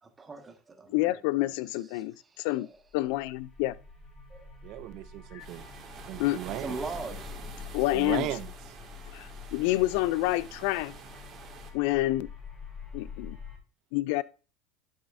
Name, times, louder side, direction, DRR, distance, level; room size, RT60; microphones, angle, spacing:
voice 1, 0.0-1.2 1.9-2.8 4.3-4.5 6.6-7.3, right 3 dB, 20° right, 1.6 m, -41 dB
voice 2, 0.9-2.7 2.9-3.7 5.3-5.5 6.2-6.4 7.7-8.3 9.1-10.9 11.7-12.3 12.9-13.4 13.9-14.2, left 18 dB, 70° left, 0.4 m, -28 dB
sound 1, 2.9-13.6, left 6 dB, 20° left, 3.8 m, -46 dB
voice 3, 4.6-5.7 6.1-6.8 7.9-8.7, right 14 dB, 60° right, 0.5 m, -36 dB
sound 2, 5.4-11.7, right 6 dB, 40° right, 2.0 m, -47 dB
11.5 x 6.3 x 2.6 m
supercardioid pair, 100°, 0 cm